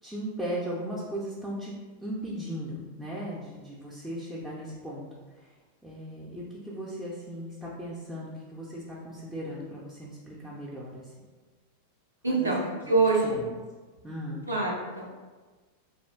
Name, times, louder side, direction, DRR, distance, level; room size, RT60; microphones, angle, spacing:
voice 1, 0.0-1.7 2.0-5.1 5.3-5.5 5.8-11.1 12.3-12.5 12.8-12.9 13.2-13.5 14.0-14.5, equal, 5° right, -6 dB, 0.5 m, -37 dB
voice 2, 12.2-12.6 12.9-13.4 14.5-15.2, right 3 dB, 80° right, -3 dB, 0.5 m, -25 dB
2.8 x 2.4 x 3.3 m, 1.3 s
figure-of-eight pair, 90°, 0 cm